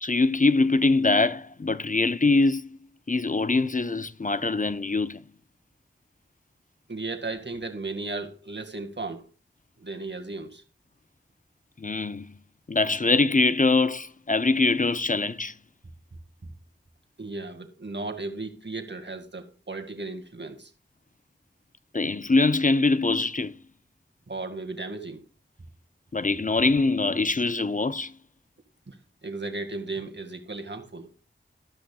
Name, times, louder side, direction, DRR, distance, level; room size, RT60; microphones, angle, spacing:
voice 1, 0.0-2.8 3.1-5.2 11.8-12.3 12.7-15.5 21.9-23.5 26.1-28.1, left 3 dB, 40° left, 0.5 m, -23 dB
voice 2, 6.9-9.3 9.8-10.6 17.2-20.7 24.3-25.2 28.9-29.0 29.2-31.1, right 3 dB, 60° right, 1.9 m, -35 dB
13.0 x 12.5 x 2.3 m
wide cardioid pair, 40°, 21 cm